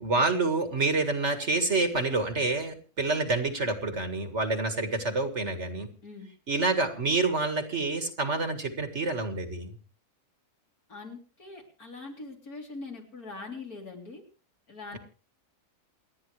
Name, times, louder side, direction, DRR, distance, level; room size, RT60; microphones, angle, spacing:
voice 1, 0.0-5.9 6.5-9.7, right 3 dB, 45° right, 7 dB, 2.0 m, -28 dB
voice 2, 10.9-14.2 14.7-15.0, left 3 dB, 70° left, 1 dB, 3.9 m, -42 dB
28.5 x 10.0 x 3.2 m, 0.37 s
omnidirectional pair, 1.6 m